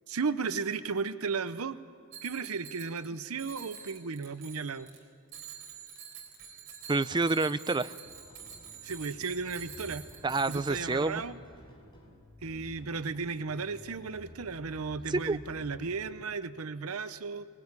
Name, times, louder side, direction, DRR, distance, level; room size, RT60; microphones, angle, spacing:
voice 1, 0.1-1.8 2.2-4.9 8.8-10.1 10.5-11.4 12.4-17.5, right 4 dB, 85° right, 13 dB, 0.8 m, -35 dB
Bicycle bell, 2.1-3.1 3.4-5.0 5.3-11.2, right 7 dB, 65° right, 4.0 m, -47 dB
voice 2, 6.9-7.9 10.2-11.2 15.1-15.4, right 3 dB, 20° right, 14 dB, 0.5 m, -28 dB
sound 1, 8.0-16.2, equal, 20° left, 5.7 m, -52 dB
21.0 x 20.5 x 9.7 m, 2.3 s
head